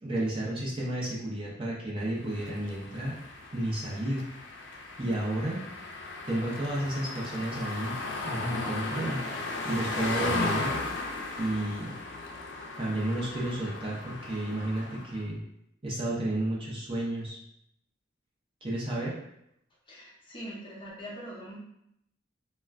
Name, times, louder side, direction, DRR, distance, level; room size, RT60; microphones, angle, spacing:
voice 1, 0.0-3.2 3.5-4.3 5.0-5.6 6.3-8.0 8.2-9.2 9.6-10.8 11.4-11.9 12.8-15.4 15.8-17.4 18.6-19.2, right 1 dB, 30° right, -6 dB, 0.6 m, -31 dB
sound 1, 2.2-15.2, left 2 dB, 70° left, 0.4 m, -36 dB
voice 2, 19.9-21.6, equal, 25° left, -4 dB, 0.6 m, -42 dB
2.4 x 2.2 x 3.3 m, 0.77 s
head